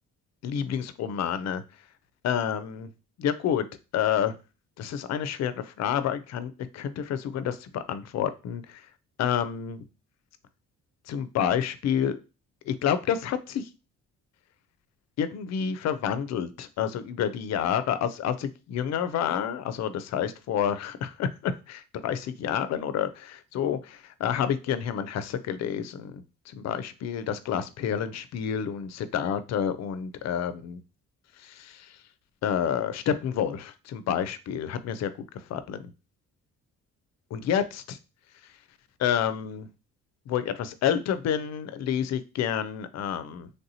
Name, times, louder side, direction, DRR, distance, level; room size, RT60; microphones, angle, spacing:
voice 1, 0.4-1.6 2.2-2.9 3.2-3.7 3.9-4.3 4.8-8.8 9.2-9.9 11.1-12.2 12.7-13.7 15.2-26.2 26.5-30.8 31.4-32.0 32.4-35.1 35.5-35.8 37.3-38.0 39.0-39.7 40.3-43.5, left 8 dB, 60° left, 12 dB, 0.5 m, -29 dB
3.2 x 2.8 x 2.7 m, 0.31 s
cardioid pair, 90°, 30 cm